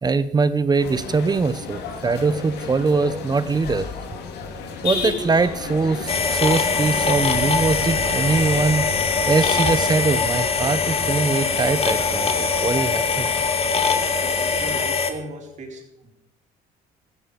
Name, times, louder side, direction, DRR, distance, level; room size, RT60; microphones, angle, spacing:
voice 1, 0.0-3.9 4.8-8.9 9.3-13.4, right 4 dB, 25° right, 14 dB, 0.9 m, -22 dB
sound 1, 0.8-14.9, left 4 dB, 75° left, 2.7 m, -32 dB
sound 2, 6.1-15.1, left 5 dB, 35° left, 2.2 m, -22 dB
voice 2, 14.6-16.1, right 2 dB, 45° right, 0 dB, 4.9 m, -37 dB
15.5 x 15.0 x 5.2 m, 0.85 s
cardioid pair, 110°, 17 cm